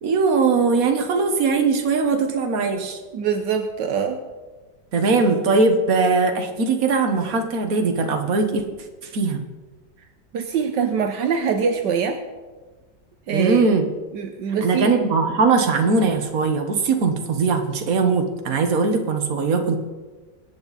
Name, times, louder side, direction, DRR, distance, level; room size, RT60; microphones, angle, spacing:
voice 1, 0.0-3.0 4.9-8.6 9.1-9.4 13.3-13.9 14.6-19.8, right 4 dB, 55° right, 5 dB, 1.7 m, -20 dB
voice 2, 3.1-4.2 10.3-12.2 13.3-13.8 14.1-14.9, right 6 dB, 75° right, 6 dB, 1.5 m, -23 dB
23.0 x 9.0 x 4.2 m, 1.3 s
omnidirectional pair, 1.9 m